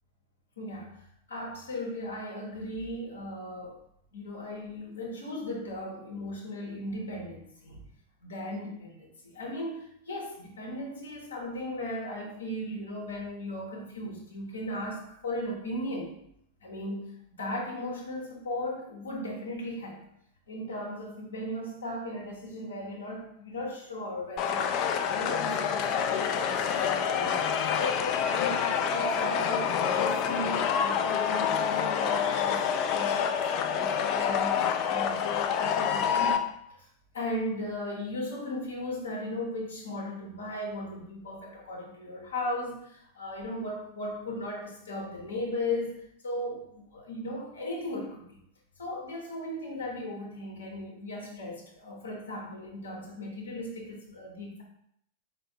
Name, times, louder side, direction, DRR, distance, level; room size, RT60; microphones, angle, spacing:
voice 1, 0.6-1.0 1.3-3.8 4.1-7.8 8.2-16.2 16.6-20.0 20.5-36.4 36.7-36.9 37.1-48.4 48.8-54.6, left 1 dB, 70° left, -2 dB, 0.8 m, -37 dB
sound 1, 24.4-36.4, left 7 dB, 40° left, 0.3 m, -27 dB
4.2 x 2.0 x 3.8 m, 0.71 s
figure-of-eight pair, 90°, 0 cm